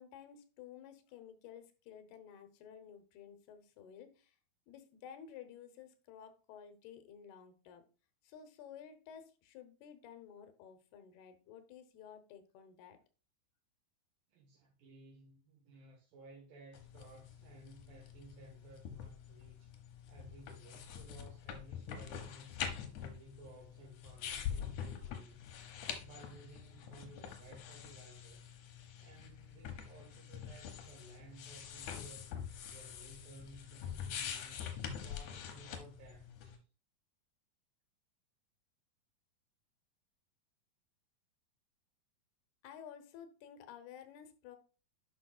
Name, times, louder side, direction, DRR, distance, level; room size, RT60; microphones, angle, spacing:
voice 1, 0.0-4.4 4.7-7.8 8.2-13.0 42.6-44.6, left 8 dB, 85° left, 2.9 m, -53 dB
voice 2, 14.3-19.7 20.1-22.7 23.0-25.5 25.8-28.6 29.0-32.4 32.6-34.6 35.0-36.7, right 2 dB, 70° right, 3.0 m, -57 dB
sound 1, 16.7-36.6, left 8 dB, 70° left, 2.0 m, -45 dB
10.0 x 5.5 x 2.3 m
omnidirectional pair, 4.4 m